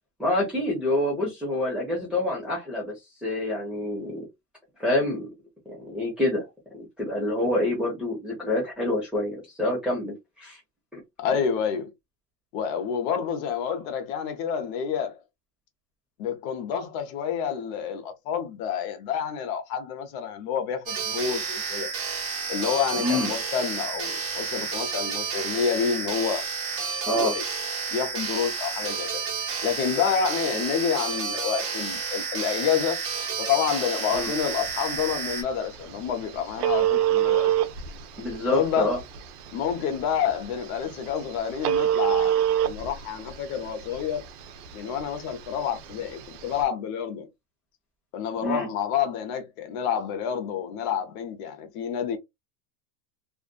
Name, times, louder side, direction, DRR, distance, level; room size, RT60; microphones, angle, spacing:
voice 1, 0.2-4.3 4.8-5.3 5.7-6.4 6.7-10.6 10.9-11.0 23.0-23.3 27.1-27.4 34.1-34.3 38.2-39.0 48.4-48.7, left 1 dB, ahead, 0.9 m, -27 dB
voice 2, 11.2-11.9 12.5-15.2 16.2-21.9 22.5-26.4 27.2-27.4 27.9-29.2 29.6-33.0 33.4-37.5 38.5-38.9 39.5-42.3 42.6-44.3 44.7-47.3 48.1-52.2, left 7 dB, 55° left, 0.9 m, -28 dB
sound 1, 20.9-35.4, right 5 dB, 30° right, 1.1 m, -31 dB
Telephone, 34.1-46.6, right 11 dB, 65° right, 0.6 m, -29 dB
2.5 x 2.4 x 2.2 m
supercardioid pair, 130°, 49 cm